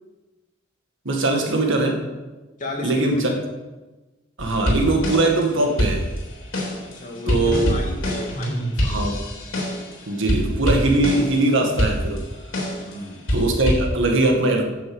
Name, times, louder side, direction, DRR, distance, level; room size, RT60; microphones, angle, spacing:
voice 1, 1.1-2.0 2.8-3.3 4.4-6.1 7.3-7.7 8.8-9.2 10.1-12.2 13.3-14.6, right 2 dB, 65° right, 2 dB, 1.8 m, -21 dB
voice 2, 2.6-3.3 6.8-9.1 12.8-13.3, left 2 dB, 40° left, 0 dB, 2.2 m, -33 dB
sound 1, 4.4-5.4 5.8-9.9 10.3-11.4 11.8-12.9 13.3-13.9, equal, 70° left, 3.6 m, -25 dB
9.3 x 7.1 x 7.8 m, 1.2 s
head